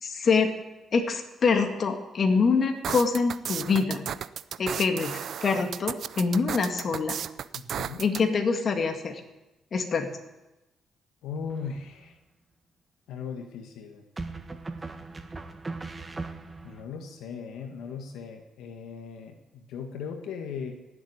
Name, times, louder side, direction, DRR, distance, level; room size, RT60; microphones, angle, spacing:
voice 1, 0.0-0.5 0.9-4.0 4.6-7.1 8.0-9.2 9.7-10.1, left 4 dB, 50° left, 4 dB, 2.3 m, -25 dB
sound 1, 2.8-8.2, right 9 dB, 65° right, 0.6 m, -34 dB
voice 2, 7.5-8.0 11.2-12.1 13.1-14.0 16.6-20.7, left 6 dB, 85° left, 4 dB, 1.8 m, -38 dB
sound 2, 11.5-12.1 14.2-16.8, right 3 dB, 25° right, 1.7 m, -38 dB
16.5 x 8.0 x 9.8 m, 1.0 s
cardioid pair, 75°, 0 cm